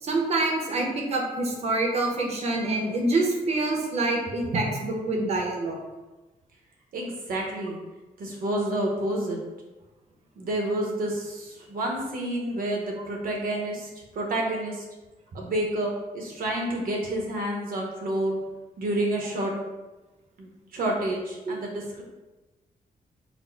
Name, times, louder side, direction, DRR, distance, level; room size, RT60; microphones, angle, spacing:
voice 1, 0.0-5.8 21.5-21.6, right 2 dB, 45° right, 0 dB, 0.7 m, -26 dB
voice 2, 6.9-7.8 8.2-9.4 10.4-14.9 15.3-18.4 18.8-19.5 20.4-22.0, right 1 dB, 70° right, 0 dB, 0.9 m, -29 dB
4.2 x 2.1 x 4.4 m, 1.1 s
wide cardioid pair, 175°, 15 cm